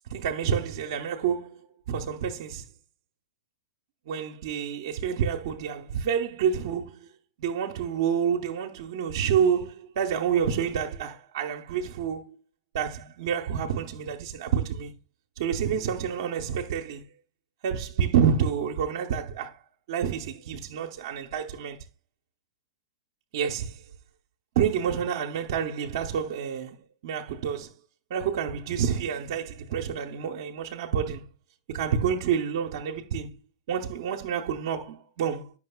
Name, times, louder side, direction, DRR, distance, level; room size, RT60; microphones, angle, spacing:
voice 1, 0.1-1.6 1.9-2.7 4.1-7.1 7.4-12.4 12.7-14.9 15.4-17.0 17.6-19.6 19.9-21.8 23.3-23.8 24.6-26.8 27.0-27.7 28.1-31.2 31.7-33.4 33.7-35.5, right 7 dB, 65° right, 0.7 m, -28 dB
9.4 x 6.0 x 2.2 m
hypercardioid pair, 115°, 2 cm